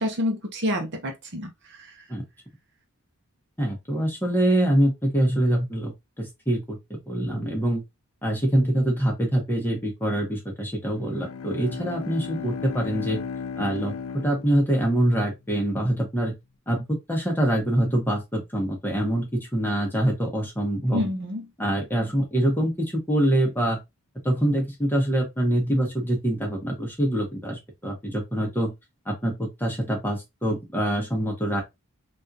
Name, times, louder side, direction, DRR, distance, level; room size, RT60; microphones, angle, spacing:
voice 1, 0.0-2.0 20.9-21.5, left 1 dB, 50° right, 0.8 m, -28 dB
voice 2, 3.6-5.9 6.2-7.8 8.2-13.2 13.6-16.3 16.7-21.1 21.6-23.8 24.2-28.7 29.0-31.6, right 1 dB, 10° left, 0.9 m, -25 dB
Bowed string instrument, 11.0-15.3, left 6 dB, 65° left, 0.3 m, -35 dB
3.5 x 2.5 x 2.6 m
head